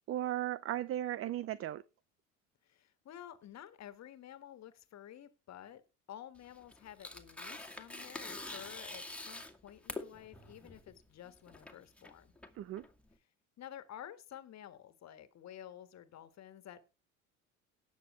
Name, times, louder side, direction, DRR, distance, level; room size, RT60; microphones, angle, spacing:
voice 1, 0.1-1.8 12.6-12.8, right 12 dB, 35° right, 18 dB, 0.6 m, -36 dB
voice 2, 2.6-5.8 6.1-12.3 13.6-16.8, left 11 dB, 45° left, 12 dB, 1.7 m, -51 dB
Tearing, 6.4-13.1, left 2 dB, 5° left, 2.1 m, -46 dB
18.5 x 6.8 x 3.2 m, 0.29 s
hypercardioid pair, 70°, 37 cm